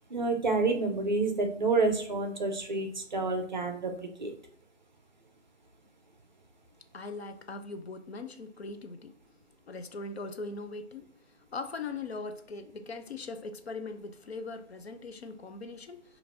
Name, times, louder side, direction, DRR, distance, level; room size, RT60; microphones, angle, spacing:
voice 1, 0.1-4.3, right 3 dB, 40° right, 5 dB, 0.5 m, -29 dB
voice 2, 6.9-9.2 9.7-11.1 11.5-16.2, left 3 dB, 60° left, 8 dB, 0.5 m, -40 dB
4.9 x 2.5 x 2.8 m, 0.62 s
figure-of-eight pair, 150°, 37 cm